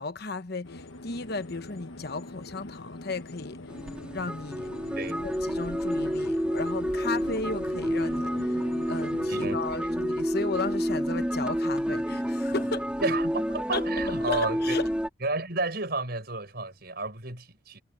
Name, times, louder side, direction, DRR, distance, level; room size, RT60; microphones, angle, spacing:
voice 1, 0.0-3.6 4.1-4.7 5.2-8.6 8.9-12.9 13.7-13.8 14.3-14.9, left 3 dB, 55° left, 1.1 m, -34 dB
sound 1, 0.6-9.6, left 2 dB, 80° left, 1.2 m, -43 dB
sound 2, 3.7-15.1, equal, 5° right, 2.8 m, -29 dB
voice 2, 9.3-10.0 13.0-14.9 15.2-17.8, right 3 dB, 50° right, 6.7 m, -32 dB
head